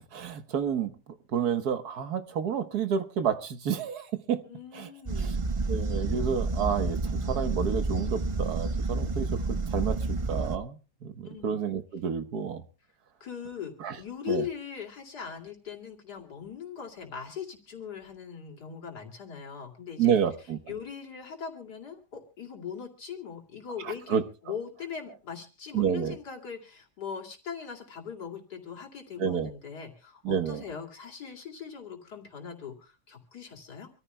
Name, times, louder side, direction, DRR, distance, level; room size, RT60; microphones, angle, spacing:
voice 1, 0.1-0.9 1.3-4.4 4.7-4.9 5.2-5.3 5.7-10.0 10.3-12.6 13.8-14.0 14.3-14.4 20.0-20.6 23.8-24.2 25.7-26.2 29.2-29.5 30.2-30.6, right 7 dB, 70° right, 1.6 m, -29 dB
voice 2, 4.5-5.4 11.2-11.5 13.2-20.2 20.7-33.9, left 7 dB, 75° left, 3.1 m, -40 dB
sound 1, 5.1-10.6, right 3 dB, 40° right, 0.4 m, -30 dB
26.5 x 14.5 x 2.2 m
omnidirectional pair, 1.7 m